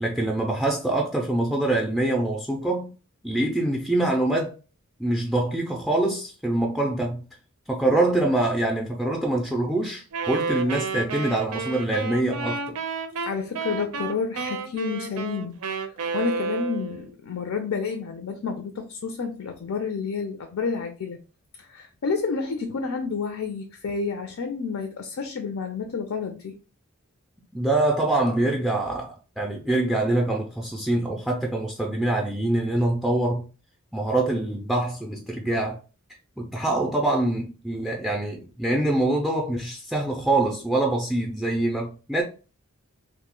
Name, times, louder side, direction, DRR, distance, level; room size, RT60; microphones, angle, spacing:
voice 1, 0.0-2.9 3.2-4.5 5.0-7.2 7.7-12.8 27.5-33.5 33.9-35.8 36.4-42.2, right 2 dB, ahead, 0.4 m, -24 dB
Wind instrument woodwind instrument, 10.1-17.1, right 4 dB, 85° right, 0.5 m, -31 dB
voice 2, 13.2-21.2 21.6-26.6, left 5 dB, 70° left, 0.4 m, -30 dB
2.7 x 2.1 x 3.6 m
head